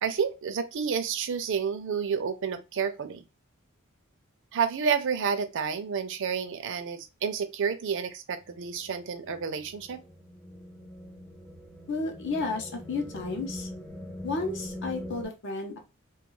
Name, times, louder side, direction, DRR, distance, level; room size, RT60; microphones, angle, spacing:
voice 1, 0.0-3.3 4.5-10.0, right 6 dB, 60° right, 0.4 m, -30 dB
sound 1, 8.5-15.3, left 1 dB, 5° left, 0.4 m, -42 dB
voice 2, 11.9-13.7 14.2-15.8, left 3 dB, 55° left, 0.6 m, -32 dB
2.3 x 2.3 x 3.0 m
head